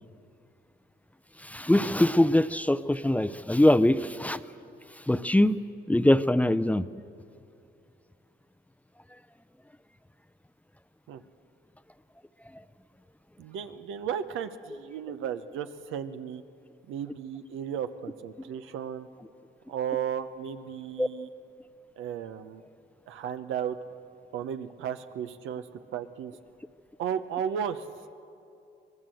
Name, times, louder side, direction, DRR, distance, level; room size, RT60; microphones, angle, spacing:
voice 1, 1.4-4.4 5.1-5.6 5.9-6.9 21.0-21.1, left 1 dB, 5° left, 14 dB, 0.5 m, -22 dB
voice 2, 13.4-16.4 16.9-19.1 19.7-21.3 22.0-22.6 23.1-23.7 24.3-26.3 27.0-27.8, right 8 dB, 90° right, 10 dB, 0.9 m, -34 dB
25.5 x 19.0 x 7.8 m, 2.6 s
cardioid pair, 90°, 20 cm